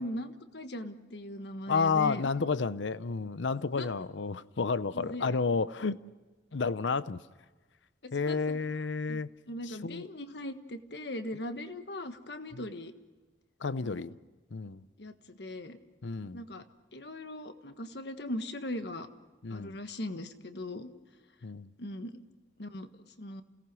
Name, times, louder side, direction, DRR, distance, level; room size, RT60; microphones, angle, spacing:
voice 1, 0.0-2.3 3.7-3.9 4.9-5.4 8.0-8.6 9.1-9.2 9.5-12.9 13.8-14.1 15.0-15.8 16.3-16.6 16.9-19.1 19.5-20.9 21.8-22.2 22.6-22.9 23.2-23.4, left 1 dB, 60° left, 1.4 m, -39 dB
voice 2, 1.7-6.0 6.5-7.2 8.1-9.3 9.7-10.1 12.5-12.6 13.6-14.1 14.5-14.8 16.0-16.4 19.4-19.8 21.4-21.7, left 4 dB, 80° left, 0.6 m, -31 dB
29.0 x 18.0 x 6.2 m
head